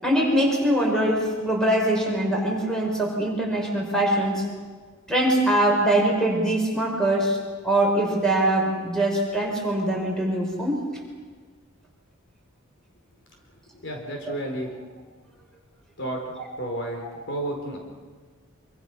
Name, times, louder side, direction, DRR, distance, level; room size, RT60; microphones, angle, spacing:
voice 1, 0.0-4.4 5.1-7.4 7.6-10.8, right 1 dB, 5° left, -1 dB, 5.6 m, -22 dB
voice 2, 13.7-14.7 16.0-16.2 16.6-17.8, right 1 dB, 55° left, 1 dB, 4.7 m, -31 dB
26.5 x 25.5 x 6.4 m, 1.5 s
head